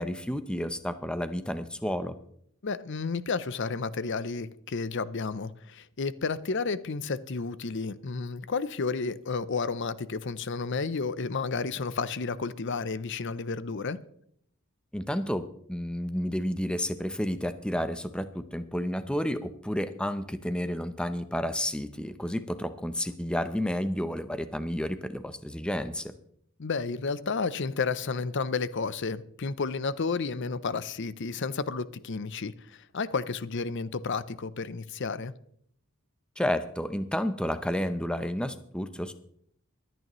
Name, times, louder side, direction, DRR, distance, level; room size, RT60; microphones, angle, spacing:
voice 1, 0.0-2.2 14.9-26.1 36.4-39.1, equal, 5° left, 0.6 m, -31 dB
voice 2, 2.6-14.0 26.6-35.3, left 4 dB, 55° left, 0.6 m, -31 dB
24.5 x 9.2 x 3.1 m
head